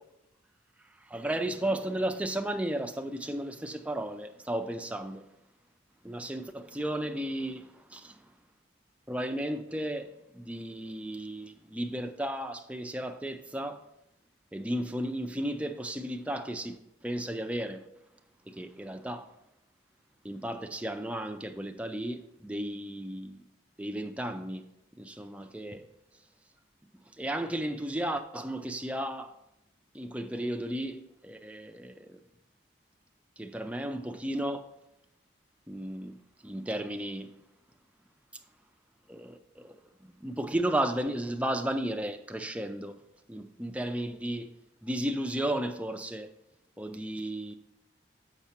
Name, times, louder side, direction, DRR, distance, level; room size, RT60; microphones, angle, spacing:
voice 1, 0.9-5.3 6.0-8.3 9.1-13.8 14.5-17.9 18.4-19.3 20.2-23.4 23.8-24.6 25.0-25.8 27.1-29.3 29.9-32.2 33.4-34.7 35.7-36.2 36.4-37.3 39.1-43.0 43.3-44.5 44.8-46.3 46.8-47.5, right 1 dB, 5° right, 0.4 m, -34 dB
7.0 x 5.8 x 4.3 m
head